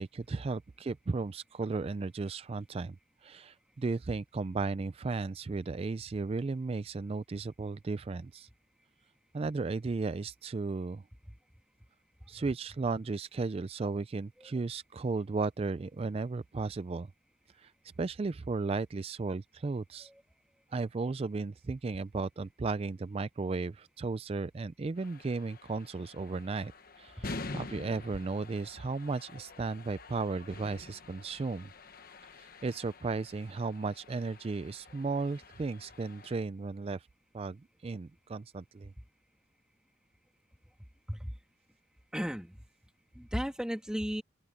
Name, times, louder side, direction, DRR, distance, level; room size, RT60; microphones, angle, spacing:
voice 1, 0.0-3.0 3.2-8.5 9.3-11.0 12.3-17.1 17.6-17.7 18.0-20.1 20.7-26.7 27.0-31.7 32.4-37.1 37.3-38.9, right 3 dB, 30° right, 0.3 m, -35 dB
sound 1, 25.0-36.4, left 3 dB, 50° left, 1.2 m, -47 dB
voice 2, 27.2-27.6 41.1-41.3 42.1-42.6 43.2-44.2, equal, 5° right, 2.0 m, -35 dB
open air
head